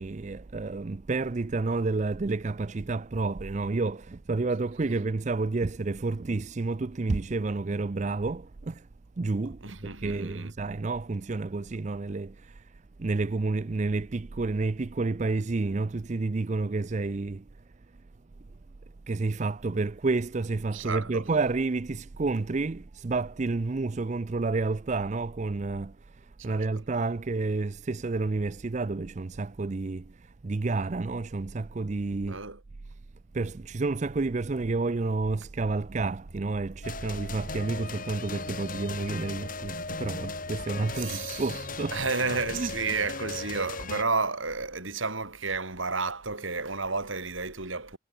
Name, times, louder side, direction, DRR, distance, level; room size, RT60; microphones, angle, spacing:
voice 1, 0.0-8.9 9.2-17.5 19.1-32.4 33.3-42.0 42.5-43.0, right 3 dB, 35° right, 0.5 m, -30 dB
voice 2, 9.6-10.5 20.7-21.2 26.4-26.7 32.3-32.6 40.9-41.6 41.9-48.0, right 4 dB, 75° right, 5.5 m, -31 dB
sound 1, 36.8-44.0, left 3 dB, 40° left, 4.7 m, -37 dB
head